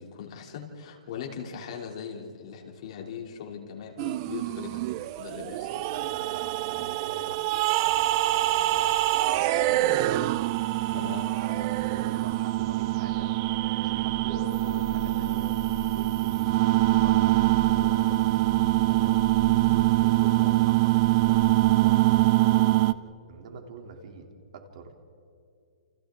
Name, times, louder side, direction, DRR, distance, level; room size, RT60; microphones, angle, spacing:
voice 1, 0.0-4.9 5.2-5.9 6.7-6.8 10.9-11.7, left 7 dB, 45° left, 1 dB, 3.2 m, -40 dB
sound 1, 4.0-22.9, right 18 dB, 30° right, 0.5 m, -24 dB
sound 2, 4.5-4.7 5.0-22.3, left 4 dB, 5° left, 5.9 m, -44 dB
voice 2, 5.8-7.6 7.8-9.8 10.9-11.1 11.4-13.3 13.7-15.5 15.9-18.2 18.8-19.2 19.6-21.5 21.8-24.3 24.5-25.1, right 4 dB, 50° right, 3 dB, 3.3 m, -44 dB
29.5 x 29.0 x 3.8 m, 2.5 s
hypercardioid pair, 165°, 4 cm